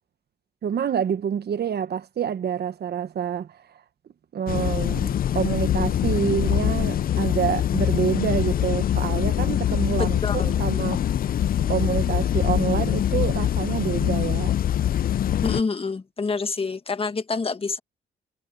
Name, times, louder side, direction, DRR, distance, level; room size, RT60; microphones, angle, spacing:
voice 1, 0.6-3.8 4.3-11.0 11.7-14.5, right 8 dB, 55° right, 1.2 m, -27 dB
sound 1, 4.5-15.6, left 10 dB, 50° left, 0.5 m, -23 dB
voice 2, 15.4-17.8, left 4 dB, 30° left, 1.7 m, -27 dB
cardioid pair, 90°, 20 cm